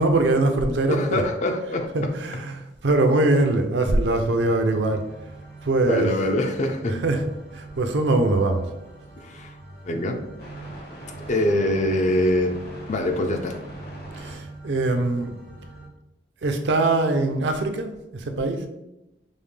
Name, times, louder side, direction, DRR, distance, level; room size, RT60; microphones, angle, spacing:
voice 1, 0.0-1.2 1.9-5.0 5.6-6.1 6.9-7.2 7.5-8.7 14.1-15.4 16.4-18.7, right 2 dB, 70° right, 6 dB, 0.5 m, -22 dB
voice 2, 0.9-1.9 5.9-7.0 9.2-9.5 9.9-10.2 11.3-12.5 12.9-13.5, left 1 dB, 40° left, 5 dB, 0.4 m, -23 dB
sound 1, 4.0-15.9, right 2 dB, 60° left, 1.1 m, -41 dB
5.3 x 2.1 x 3.3 m, 0.89 s
head